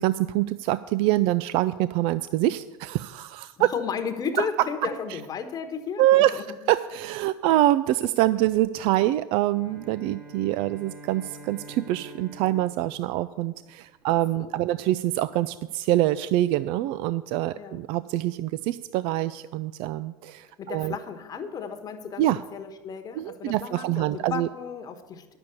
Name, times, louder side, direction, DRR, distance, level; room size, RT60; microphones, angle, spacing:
voice 1, 0.0-3.7 4.4-4.5 5.1-5.2 6.0-21.0 22.2-22.4 23.1-24.5, right 14 dB, 55° right, 15 dB, 0.4 m, -25 dB
voice 2, 3.6-6.4 14.1-14.7 17.6-17.8 20.6-22.2 22.5-25.4, left 6 dB, 35° left, 7 dB, 1.2 m, -34 dB
Bowed string instrument, 9.4-14.0, right 1 dB, 90° right, 4.0 m, -46 dB
9.8 x 6.9 x 8.1 m, 1.2 s
hypercardioid pair, 80°, 11 cm